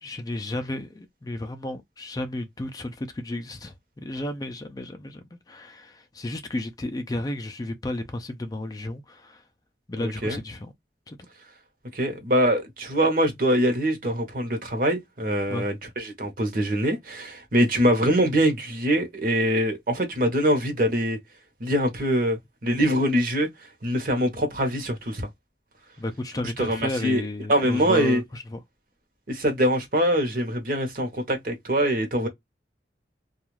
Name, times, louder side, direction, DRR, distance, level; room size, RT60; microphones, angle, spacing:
voice 1, 0.0-9.4 9.9-10.7 11.1-11.2 15.5-15.7 26.0-28.6, left 1 dB, 20° left, 0.4 m, -33 dB
voice 2, 10.0-10.4 11.9-21.2 21.6-23.5 23.8-25.3 26.6-27.2 27.5-28.2 29.3-32.3, equal, 50° right, 0.9 m, -23 dB
2.3 x 2.2 x 3.1 m
head